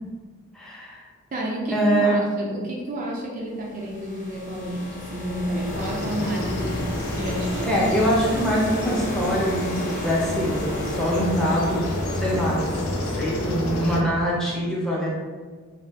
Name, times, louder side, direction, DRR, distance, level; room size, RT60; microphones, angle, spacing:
voice 1, 0.5-1.0 1.7-2.2 7.6-12.6 13.0-15.1, equal, 5° left, -6 dB, 0.6 m, -24 dB
voice 2, 1.3-7.8, right 1 dB, 35° right, -3 dB, 0.4 m, -30 dB
sound 1, 3.6-13.4, left 1 dB, 35° left, 0.9 m, -35 dB
sound 2, 5.7-14.0, left 1 dB, 80° left, 0.6 m, -29 dB
3.6 x 2.3 x 3.3 m, 1.5 s
head